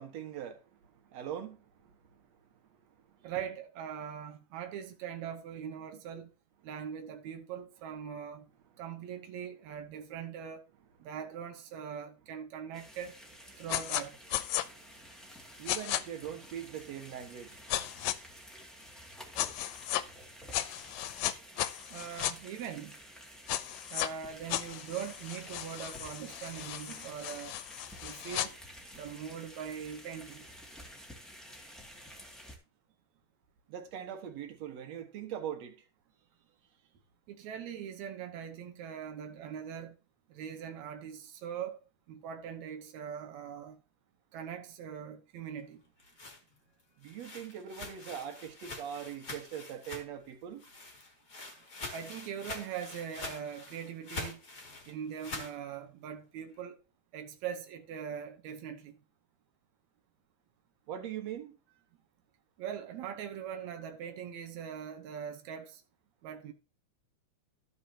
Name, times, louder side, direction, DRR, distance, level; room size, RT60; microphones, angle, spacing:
voice 1, 0.0-2.3 3.0-3.3 14.6-14.7 15.2-15.3 15.5-17.7 33.7-35.8 47.0-50.6 60.9-61.5, right 9 dB, 60° right, 2.0 m, -42 dB
voice 2, 3.2-6.3 6.6-8.5 8.8-10.6 11.0-13.2 13.6-14.2 21.9-22.9 23.9-27.6 28.0-28.6 28.9-30.5 37.3-39.9 40.3-41.8 42.1-43.8 44.3-45.8 51.9-54.4 54.9-56.8 57.1-59.0 62.6-65.8 66.2-66.5, right 8 dB, 90° right, 1.6 m, -41 dB
sound 1, 12.7-32.6, equal, ahead, 0.4 m, -51 dB
sound 2, 13.7-14.0 14.3-14.6 15.7-16.0 17.7-18.2 19.4-20.0 20.5-22.3 23.5-24.1 24.5-28.5, left 14 dB, 90° left, 2.7 m, -35 dB
sound 3, 45.8-50.3 50.6-55.6, left 3 dB, 40° left, 1.4 m, -45 dB
13.0 x 7.3 x 2.8 m
omnidirectional pair, 4.6 m